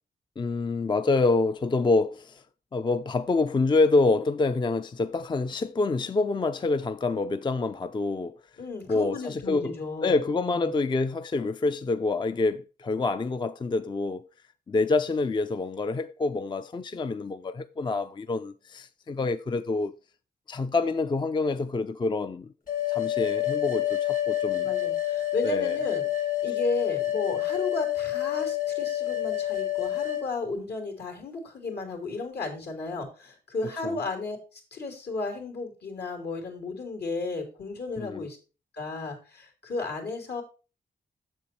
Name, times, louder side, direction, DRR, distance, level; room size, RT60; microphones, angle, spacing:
voice 1, 0.4-2.4 2.7-8.4 8.9-9.7 10.0-14.2 14.7-19.9 20.5-22.5 22.9-24.7 25.4-25.7 33.8-34.0 38.0-38.3, left 3 dB, 25° left, 0.4 m, -27 dB
voice 2, 8.6-10.7 24.6-26.1 26.4-38.4 38.7-40.4, left 3 dB, 70° left, 2.9 m, -34 dB
sound 1, 22.7-30.2, left 13 dB, 50° left, 2.3 m, -28 dB
7.2 x 7.1 x 4.3 m
wide cardioid pair, 105°, 18 cm